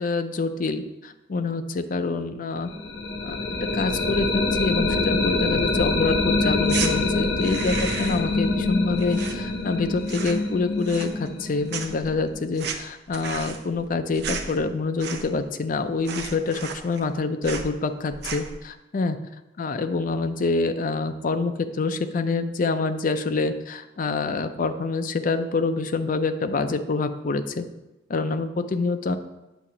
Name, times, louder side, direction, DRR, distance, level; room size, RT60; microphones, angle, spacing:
voice 1, 0.0-2.7 3.2-3.4 3.7-19.2 19.6-27.7 28.1-29.2, left 3 dB, 45° left, 9 dB, 0.4 m, -26 dB
sound 1, 2.7-12.5, left 3 dB, 70° left, 1.0 m, -25 dB
sound 2, 6.6-6.9 7.3-8.3 8.6-9.8 10.0-10.5 10.8-11.4 11.7-15.5 15.7-15.8 16.0-17.1 17.4-17.7 18.1-18.6, right 6 dB, 60° right, 0.6 m, -34 dB
8.1 x 2.8 x 6.0 m, 0.99 s
head